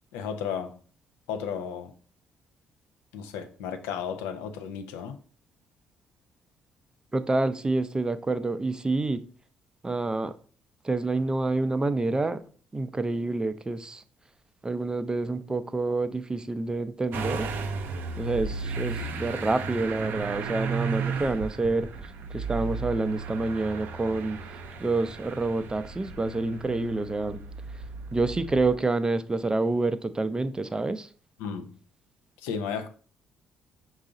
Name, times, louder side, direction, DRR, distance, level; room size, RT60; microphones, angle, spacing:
voice 1, 0.1-0.8 1.3-1.9 3.1-5.2 31.4-31.8 32.4-32.9, left 7 dB, 80° left, 0.6 m, -34 dB
voice 2, 7.1-9.2 9.8-10.3 10.8-12.4 12.7-14.0 14.6-17.5 18.2-21.9 22.3-24.4 24.8-27.4 28.1-31.1, right 2 dB, 20° right, 0.4 m, -27 dB
Motor vehicle (road) / Engine starting, 17.1-28.7, right 4 dB, 65° right, 0.6 m, -35 dB
5.5 x 2.4 x 3.8 m
hypercardioid pair, 55°, 4 cm